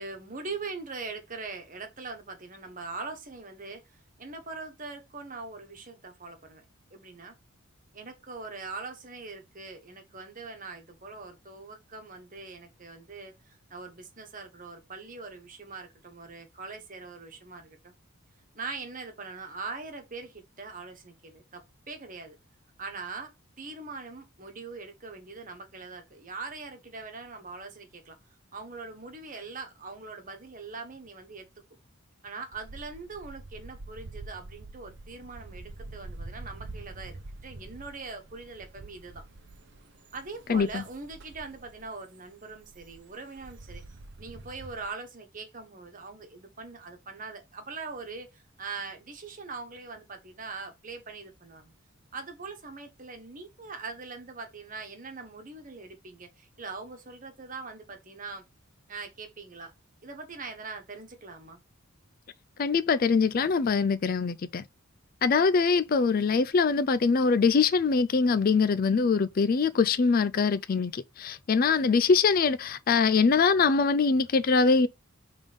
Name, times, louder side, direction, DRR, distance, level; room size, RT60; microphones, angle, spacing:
voice 1, 0.0-6.6 6.9-7.3 7.9-17.9 18.5-22.4 22.8-23.3 23.6-28.2 28.5-31.5 32.2-39.2 40.1-43.8 44.2-51.7 52.1-58.4 58.9-59.7 60.0-61.6, right 4 dB, 40° right, 1.4 m, -42 dB
sound 1, 32.5-44.9, right 2 dB, 55° right, 0.8 m, -46 dB
voice 2, 40.5-40.8 62.6-64.6 65.2-74.9, left 5 dB, 40° left, 0.4 m, -23 dB
5.3 x 3.6 x 5.2 m
head